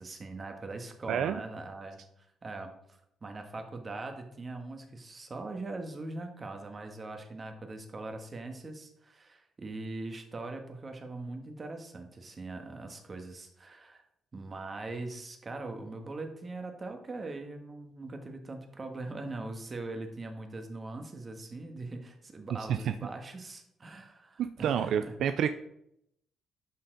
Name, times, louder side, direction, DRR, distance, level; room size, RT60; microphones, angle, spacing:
voice 1, 0.0-2.7 3.2-14.0 14.3-25.1, right 2 dB, 35° right, 5 dB, 1.4 m, -41 dB
voice 2, 1.1-1.4 22.7-23.0 24.4-25.5, right 8 dB, 75° right, 10 dB, 0.3 m, -29 dB
11.0 x 4.3 x 3.9 m, 0.76 s
cardioid pair, 90°, 0 cm